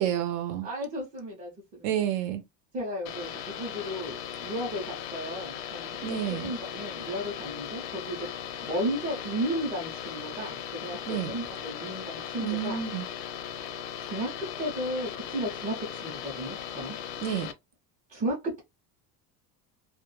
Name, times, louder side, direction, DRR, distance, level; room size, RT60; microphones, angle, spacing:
voice 1, 0.0-0.7 1.8-2.4 6.0-6.5 11.1-11.3 12.4-13.1 17.2-17.5, right 10 dB, 80° right, 0.7 m, -29 dB
voice 2, 0.6-2.0 2.7-5.9 6.3-8.3 8.6-12.8 14.0-14.3 14.6-17.0 18.1-18.6, equal, 20° right, 0.4 m, -34 dB
sound 1, 3.1-17.5, left 9 dB, 85° left, 0.6 m, -38 dB
2.2 x 2.0 x 3.0 m
cardioid pair, 180°, 40 cm